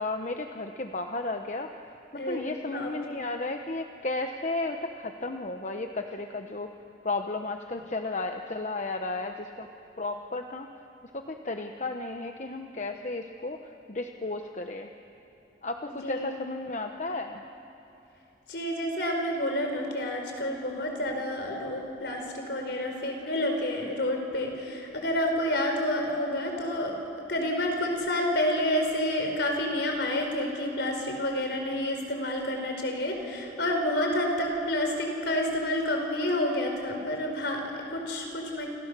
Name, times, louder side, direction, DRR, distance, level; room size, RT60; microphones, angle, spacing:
voice 1, 0.0-1.7 2.1-6.7 7.0-9.7 10.0-10.7 11.1-13.6 13.9-14.9 15.6-17.4, left 2 dB, 40° left, 5 dB, 1.0 m, -33 dB
voice 2, 2.2-2.9 15.8-16.4 18.5-38.7, left 1 dB, 65° left, 3 dB, 4.6 m, -29 dB
29.0 x 28.5 x 6.9 m, 2.9 s
head